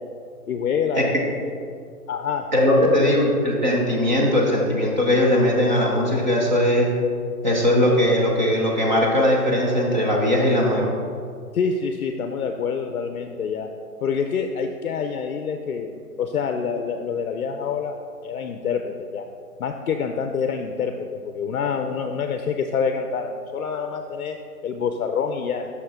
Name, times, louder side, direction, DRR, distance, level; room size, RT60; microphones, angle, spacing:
voice 1, 0.5-1.3 2.1-3.1 11.5-13.7 14.0-15.9 16.2-18.0 18.2-19.2 19.6-24.4 24.6-25.7, left 6 dB, 65° left, 5 dB, 0.5 m, -26 dB
voice 2, 2.5-6.9 7.4-10.9, left 1 dB, 30° right, -2 dB, 0.7 m, -19 dB
6.0 x 5.7 x 3.4 m, 2.3 s
hypercardioid pair, 170°, 46 cm